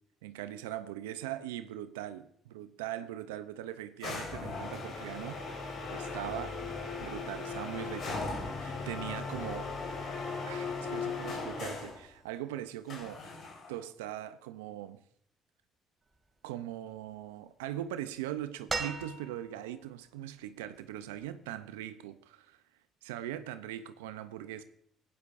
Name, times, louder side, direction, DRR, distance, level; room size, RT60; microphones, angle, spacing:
voice 1, 0.2-6.5 7.0-8.2 8.6-9.7 10.5-13.2 13.7-15.0 16.4-22.6 23.0-24.6, right 12 dB, 90° right, 0.5 m, -41 dB
sound 1, 4.0-12.0 12.9-13.8, left 4 dB, 60° left, 3.5 m, -38 dB
sound 2, 18.7-19.7 21.2-21.3, right 4 dB, 30° right, 2.4 m, -36 dB
15.5 x 11.0 x 2.5 m
hypercardioid pair, 60°, 0 cm